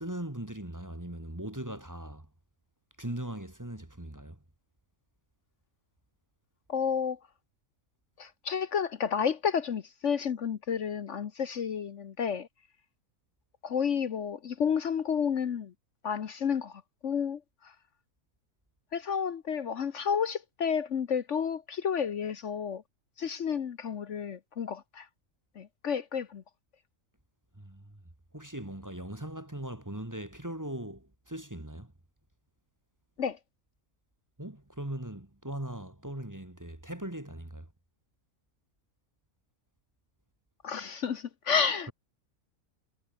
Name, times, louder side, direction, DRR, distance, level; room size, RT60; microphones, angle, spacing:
voice 1, 0.0-2.3 3.0-4.4 27.6-28.0 28.3-31.9 34.4-37.7, right 1 dB, 15° right, 1.9 m, -39 dB
voice 2, 6.7-7.2 8.2-12.5 13.6-15.7 16.0-17.4 18.9-22.8 23.2-25.1 25.6-26.4 33.2-33.4 40.6-41.9, left 7 dB, 60° left, 1.3 m, -31 dB
omnidirectional pair, 1.4 m